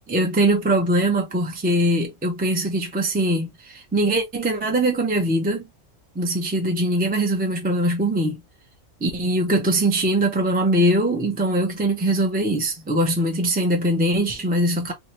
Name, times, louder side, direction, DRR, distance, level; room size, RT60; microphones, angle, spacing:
voice 1, 0.1-5.7 6.1-8.4 9.0-14.9, right 1 dB, 15° right, 0.3 m, -22 dB
2.8 x 2.4 x 2.9 m
omnidirectional pair, 1.4 m